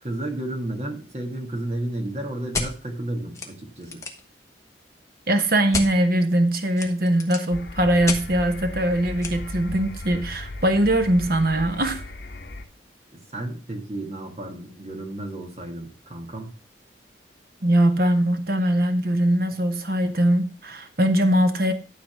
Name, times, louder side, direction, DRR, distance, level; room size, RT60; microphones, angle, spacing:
voice 1, 0.0-4.0 13.3-16.5, right 1 dB, 35° right, 1.8 m, -32 dB
sound 1, 2.5-2.7 3.3-3.5 3.8-4.3 5.7-5.9 6.7-7.5 8.1-8.2 9.2-9.3, left 3 dB, 15° left, 1.4 m, -29 dB
voice 2, 5.3-12.0 17.6-21.7, right 1 dB, 55° right, 1.1 m, -21 dB
sound 2, 7.5-12.6, left 2 dB, 70° left, 1.2 m, -36 dB
12.0 x 4.0 x 6.2 m
head